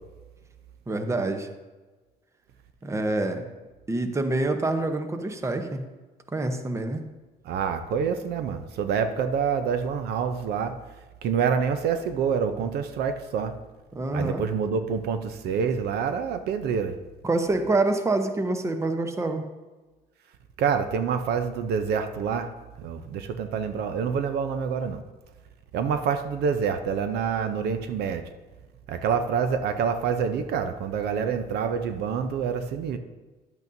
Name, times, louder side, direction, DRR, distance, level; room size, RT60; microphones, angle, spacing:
voice 1, 0.9-1.5 2.8-3.5 3.9-5.8 6.3-7.0 13.9-14.4 17.2-19.4, right 2 dB, 15° right, 7 dB, 0.8 m, -26 dB
voice 2, 7.4-10.8 11.2-13.5 14.1-17.0 20.6-22.5 22.8-25.0 25.7-28.3 28.9-33.0, right 6 dB, 75° right, 9 dB, 0.6 m, -27 dB
11.0 x 8.1 x 2.7 m, 1.3 s
cardioid pair, 110°, 17 cm